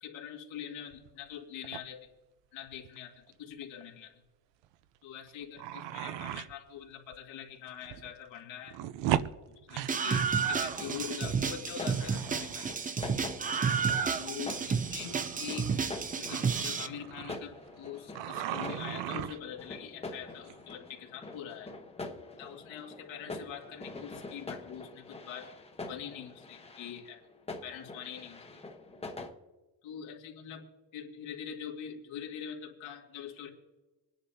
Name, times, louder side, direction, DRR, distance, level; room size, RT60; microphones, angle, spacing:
voice 1, 0.0-2.1 2.5-4.2 5.0-8.8 9.5-12.7 14.1-15.7 16.2-21.7 22.4-25.6 25.9-27.2 27.6-28.4 29.8-33.5, left 9 dB, 85° left, 1 dB, 2.2 m, -44 dB
sound 1, 0.9-1.3 1.6-1.8 2.7-3.0 3.3-3.4 3.6-3.8 4.6-4.7 5.3-6.5 7.1-7.2 7.7-8.1 8.4-11.2 11.5-12.7 13.8-14.0 14.4-17.9 18.1-19.6 20.5-20.7, right 12 dB, 70° right, 0.7 m, -38 dB
Screaming, 9.9-16.9, right 6 dB, 20° right, 0.4 m, -31 dB
sound 2, 10.7-29.3, left 3 dB, 15° left, 1.0 m, -45 dB
25.0 x 10.0 x 2.8 m, 1.2 s
cardioid pair, 160°, 45 cm